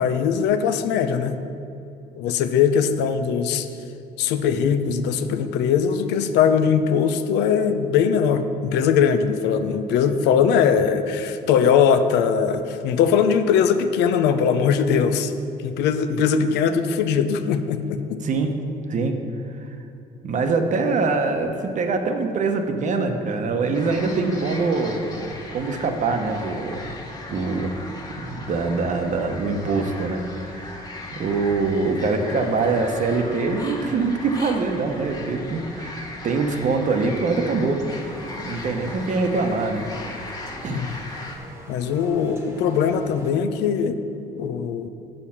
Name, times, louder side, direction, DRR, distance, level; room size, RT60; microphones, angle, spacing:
voice 1, 0.0-1.4 2.1-3.7 4.2-15.3 15.6-18.2 40.7-40.9 41.7-44.0 44.4-44.9, left 7 dB, 85° left, 9 dB, 0.6 m, -21 dB
voice 2, 20.2-26.9 27.3-27.7 28.2-37.8 38.4-39.9 40.6-40.8, right 4 dB, 45° right, 5 dB, 0.9 m, -24 dB
sound 1, 23.7-41.4, left 2 dB, 25° left, 1.2 m, -38 dB
sound 2, 37.9-43.3, right 1 dB, 15° right, 1.2 m, -44 dB
7.0 x 6.6 x 5.7 m, 2.7 s
cardioid pair, 110°, 17 cm